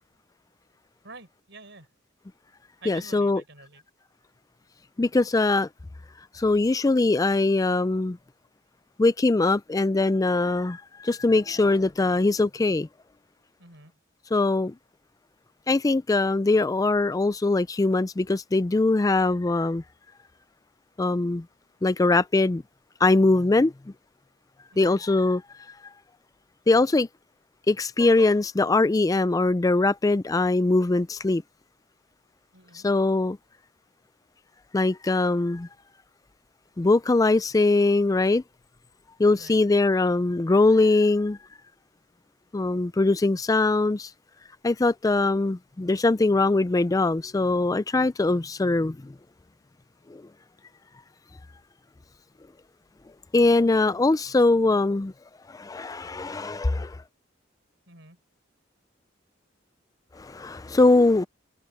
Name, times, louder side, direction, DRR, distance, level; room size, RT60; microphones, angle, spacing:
voice 1, 1.0-1.9 2.8-3.8 13.6-14.0 24.7-25.0 32.5-32.9 39.3-39.6 57.9-58.2, right 3 dB, 65° right, 6.1 m, -48 dB
voice 2, 2.9-3.4 5.0-5.7 6.3-8.2 9.0-12.9 14.3-14.7 15.7-19.8 21.0-21.4 21.8-22.6 23.0-23.7 24.8-25.4 26.7-27.1 27.7-31.4 32.7-33.4 34.7-35.7 36.8-38.4 39.2-41.4 42.5-44.1 44.6-49.1 50.1-50.2 53.3-55.1 55.5-57.0 60.2-61.3, left 2 dB, 20° left, 0.4 m, -22 dB
head